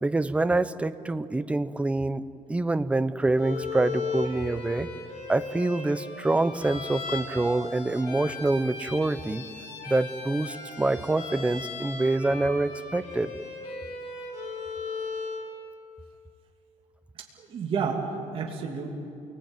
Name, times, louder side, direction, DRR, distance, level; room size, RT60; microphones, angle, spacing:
voice 1, 0.0-2.2 2.5-4.9 5.3-9.4 9.9-13.3, right 2 dB, 10° right, 13 dB, 0.8 m, -26 dB
Bowed string instrument, 3.4-15.5, left 4 dB, 70° left, 5.4 m, -37 dB
voice 2, 17.4-18.9, right 5 dB, 45° right, 0 dB, 2.8 m, -30 dB
29.0 x 20.0 x 9.2 m, 2.6 s
cardioid pair, 135°, 13 cm